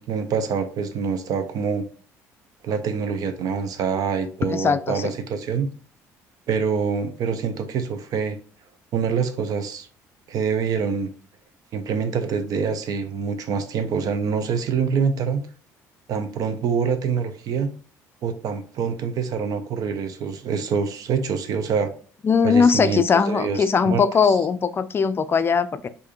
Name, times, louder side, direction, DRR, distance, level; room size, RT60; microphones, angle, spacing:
voice 1, 0.0-1.9 2.6-5.7 6.5-8.4 8.9-9.9 10.3-11.1 11.7-15.5 16.1-17.7 18.2-21.9 22.4-24.3, right 6 dB, 60° right, 0.7 m, -25 dB
voice 2, 4.5-5.1 22.2-25.9, left 6 dB, 35° left, 0.4 m, -20 dB
4.6 x 2.6 x 3.0 m
supercardioid pair, 75°, 7 cm